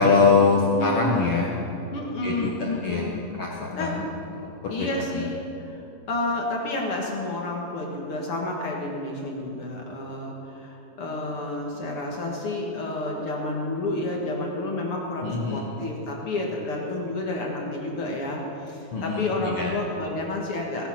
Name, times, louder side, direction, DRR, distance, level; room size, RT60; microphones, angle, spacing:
voice 1, 0.0-1.5 2.2-3.1 3.4-4.0 4.4-4.9 5.2-5.3 15.2-15.6 18.9-19.7, left 4 dB, 75° left, -2 dB, 1.3 m, -23 dB
voice 2, 0.7-1.1 1.9-3.2 3.7-4.0 4.7-5.8 6.1-20.9, left 2 dB, 45° left, -1 dB, 2.0 m, -30 dB
18.0 x 11.0 x 5.9 m, 2.8 s
omnidirectional pair, 4.6 m